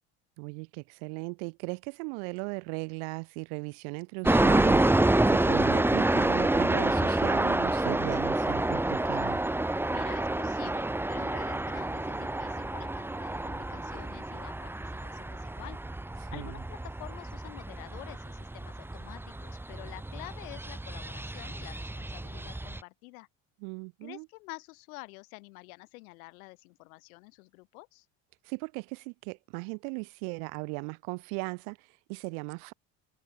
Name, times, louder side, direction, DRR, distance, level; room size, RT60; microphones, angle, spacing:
voice 1, 0.4-9.4 16.2-16.6 23.6-24.3 28.4-32.7, right 40 dB or more, 80° right, 1.2 m, -37 dB
sound 1, 4.2-22.8, right 2 dB, 5° right, 0.9 m, -28 dB
voice 2, 9.9-15.8 16.3-23.3 24.0-28.1, left 25 dB, 90° left, 4.0 m, -48 dB
supercardioid pair, 95°, 42 cm